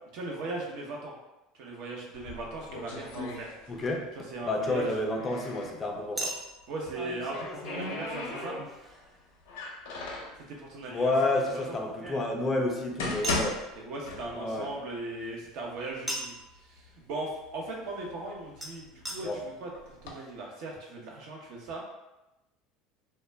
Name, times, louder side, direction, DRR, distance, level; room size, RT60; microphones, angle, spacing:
voice 1, 0.1-1.1 1.6-3.8 4.2-4.9 6.7-8.7 10.5-11.1 11.5-11.8 13.8-21.8, right 2 dB, 65° right, -1 dB, 0.7 m, -38 dB
sound 1, 2.1-4.0 4.3-5.7 6.9-8.9 9.5-10.4 11.2-11.3 11.9-12.0 12.7-14.6 15.0-15.1 15.8-15.9 16.2-16.9 17.4-19.1 19.7-20.1, left 2 dB, 85° left, 0.5 m, -37 dB
Chink clink, 3.3-3.5 6.2-9.3 10.9-12.6 13.2-13.5 16.1-16.5 18.6-18.7 19.0-19.2 19.8-19.9 20.1-20.2, right 1 dB, 15° right, 0.6 m, -39 dB
voice 2, 3.7-4.1 4.4-6.3 10.9-13.6 14.3-14.7 19.2-19.4, left 2 dB, 25° left, 1 dB, 0.5 m, -29 dB
2.2 x 2.1 x 3.3 m, 0.99 s
supercardioid pair, 100°, 0 cm